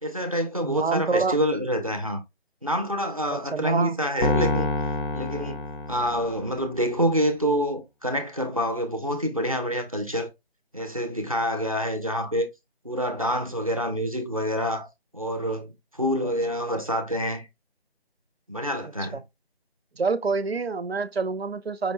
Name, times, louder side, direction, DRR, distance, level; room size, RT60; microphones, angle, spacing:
voice 1, 0.0-2.2 2.6-4.7 5.1-5.6 5.9-10.3 10.7-12.5 12.8-14.9 15.1-17.5 18.5-19.2, equal, 35° right, 0.5 m, -27 dB
voice 2, 0.6-1.4 3.3-4.0 18.8-19.2 20.0-21.9, right 4 dB, 75° right, 0.6 m, -27 dB
Piano, 4.2-6.6, left 3 dB, 55° left, 0.8 m, -27 dB
5.1 x 2.2 x 3.1 m
figure-of-eight pair, 165°, 32 cm